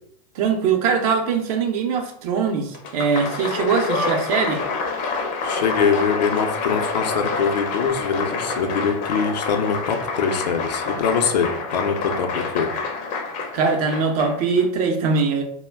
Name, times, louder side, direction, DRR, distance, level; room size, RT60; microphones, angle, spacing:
voice 1, 0.3-4.6 13.5-15.4, right 5 dB, 60° right, 5 dB, 0.6 m, -21 dB
Applause, 2.7-14.6, left 4 dB, 40° left, 0.5 m, -27 dB
voice 2, 5.4-12.7, left 6 dB, 90° left, 5 dB, 0.5 m, -23 dB
2.2 x 2.1 x 3.3 m, 0.67 s
hypercardioid pair, 110°, 21 cm